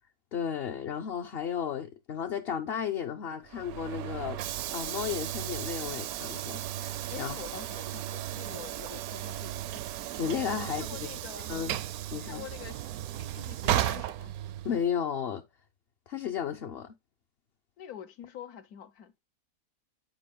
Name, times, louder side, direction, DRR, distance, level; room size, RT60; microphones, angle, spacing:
voice 1, 0.3-4.4 4.7-7.4 10.2-11.1 11.5-11.8 12.1-12.5 14.6-15.4 16.1-16.9, left 8 dB, 50° left, 0.8 m, -34 dB
Train / Sliding door, 3.5-14.9, right 12 dB, 80° right, 1.1 m, -35 dB
voice 2, 7.1-9.9 10.6-11.5 12.3-12.9 13.2-14.3 17.8-19.2, left 9 dB, 80° left, 1.4 m, -46 dB
9.1 x 4.9 x 3.7 m
omnidirectional pair, 1.6 m